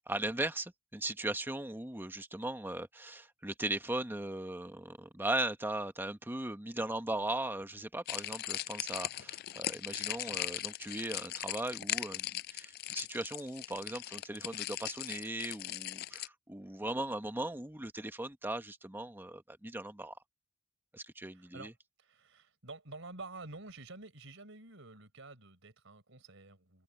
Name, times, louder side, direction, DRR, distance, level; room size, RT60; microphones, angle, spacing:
voice 1, 0.1-20.2 20.9-21.7, right 1 dB, 10° right, 1.1 m, -38 dB
sound 1, 8.1-16.3, left 14 dB, 50° left, 0.3 m, -39 dB
voice 2, 21.3-21.7 22.0-26.8, right 3 dB, 65° right, 4.7 m, -49 dB
head